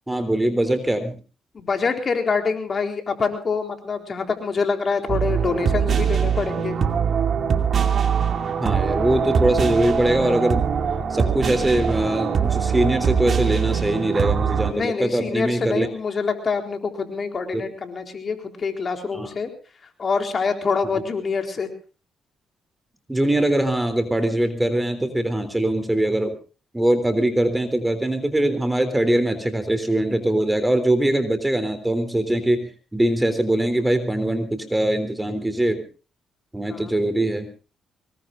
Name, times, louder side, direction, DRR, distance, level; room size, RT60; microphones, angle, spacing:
voice 1, 0.1-1.1 8.6-10.7 11.1-15.9 17.5-17.6 19.1-19.3 20.9-21.0 23.1-26.4 26.7-35.8 36.5-37.5, right 1 dB, 10° right, 9 dB, 3.5 m, -22 dB
voice 2, 1.5-6.8 14.7-19.5 20.0-21.7 36.7-36.9, left 5 dB, 40° left, 5 dB, 3.9 m, -25 dB
sound 1, 5.1-14.7, right 7 dB, 50° right, 2.5 m, -22 dB
24.5 x 21.0 x 2.6 m, 0.35 s
cardioid pair, 90°, 0 cm